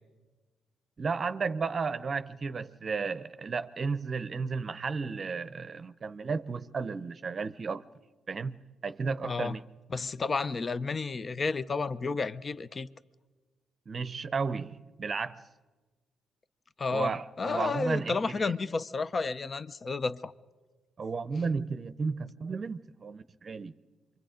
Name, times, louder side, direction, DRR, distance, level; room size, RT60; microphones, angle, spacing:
voice 1, 1.0-7.8 8.3-8.6 8.8-9.6 13.9-15.4 16.9-18.5 21.0-23.7, right 4 dB, 40° right, 0.7 m, -33 dB
voice 2, 9.2-9.6 9.9-12.9 16.8-20.3, left 4 dB, 35° left, 0.6 m, -31 dB
26.5 x 24.0 x 5.1 m
cardioid pair, 90°, 0 cm